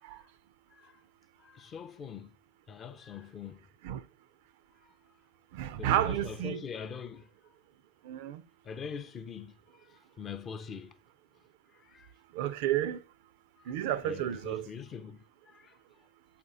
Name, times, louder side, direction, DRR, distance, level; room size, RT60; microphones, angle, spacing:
voice 1, 0.7-1.0 1.4-2.4 2.7-3.7 4.8-4.9 5.8-7.6 8.6-11.0 11.7-12.1 13.6-13.8 14.0-15.8, left 6 dB, 25° left, 0.5 m, -44 dB
voice 2, 5.5-6.6 8.1-8.4 12.4-13.0 13.7-14.7, right 12 dB, 50° right, 0.4 m, -31 dB
7.7 x 4.3 x 3.7 m
figure-of-eight pair, 90°, 0 cm